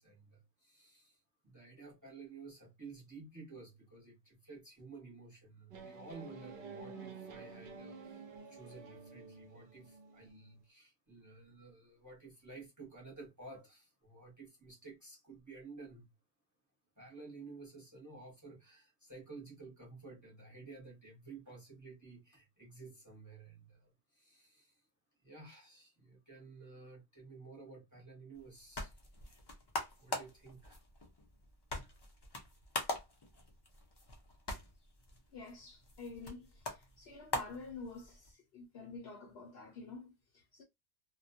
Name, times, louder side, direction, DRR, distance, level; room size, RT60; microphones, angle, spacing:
voice 1, 0.0-16.1 17.0-24.8 25.2-29.0 30.0-30.8 31.7-31.9, right 3 dB, 15° right, 0.8 m, -53 dB
sound 1, 5.7-10.4, right 4 dB, 55° right, 0.6 m, -50 dB
sound 2, 28.4-38.3, left 1 dB, 40° left, 0.3 m, -43 dB
voice 2, 35.3-40.6, left 4 dB, 60° left, 0.8 m, -49 dB
2.2 x 2.1 x 2.6 m
omnidirectional pair, 1.3 m